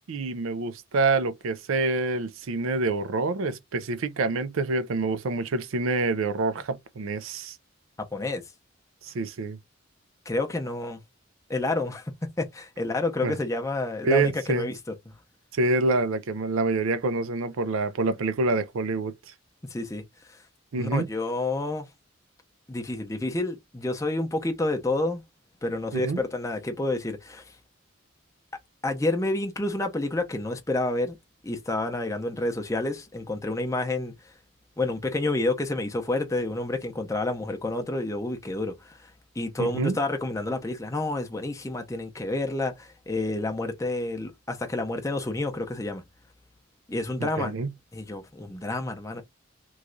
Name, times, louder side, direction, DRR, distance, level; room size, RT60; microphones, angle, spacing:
voice 1, 0.1-7.6 9.0-9.6 13.2-13.4 14.0-14.7 15.5-19.1 20.7-21.1 25.9-26.2 39.6-40.0 47.2-47.7, right 3 dB, 80° right, 0.5 m, -26 dB
voice 2, 8.1-8.4 10.3-11.0 11.5-12.1 12.4-14.7 15.1-15.2 19.7-20.0 20.7-21.9 22.7-25.2 25.6-27.4 28.8-31.2 31.4-34.1 34.8-39.0 39.4-46.0 46.9-47.5 47.9-49.2, left 2 dB, 15° left, 0.6 m, -29 dB
3.1 x 2.3 x 3.8 m
head